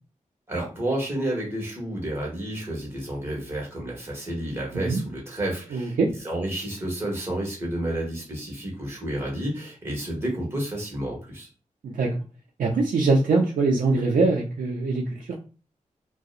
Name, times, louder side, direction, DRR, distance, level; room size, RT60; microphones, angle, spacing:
voice 1, 0.5-6.0 6.2-11.5, right 1 dB, 20° right, -3 dB, 1.0 m, -30 dB
voice 2, 5.7-6.1 11.8-12.2 12.6-15.3, right 3 dB, 85° right, -1 dB, 0.4 m, -23 dB
2.6 x 2.0 x 2.4 m, 0.36 s
wide cardioid pair, 130°, 13 cm